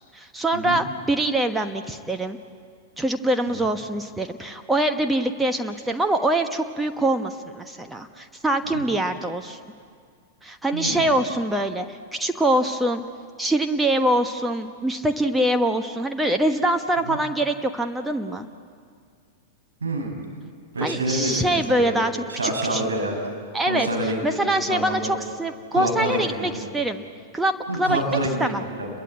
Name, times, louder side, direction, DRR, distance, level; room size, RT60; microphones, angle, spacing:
voice 1, 0.1-2.4 3.0-9.6 10.4-13.0 13.4-18.5 20.8-22.8 23.5-27.0 27.3-27.5 27.8-28.0 28.4-28.6, right 1 dB, 5° right, 6 dB, 1.2 m, -24 dB
voice 2, 10.7-11.0 17.1-17.2 19.8-20.1 20.7-22.0 22.3-23.1 23.7-25.2 25.7-26.7 27.7-28.9, right 1 dB, 70° right, 1 dB, 6.6 m, -27 dB
29.5 x 23.0 x 8.3 m, 2.1 s
figure-of-eight pair, 95°, 0 cm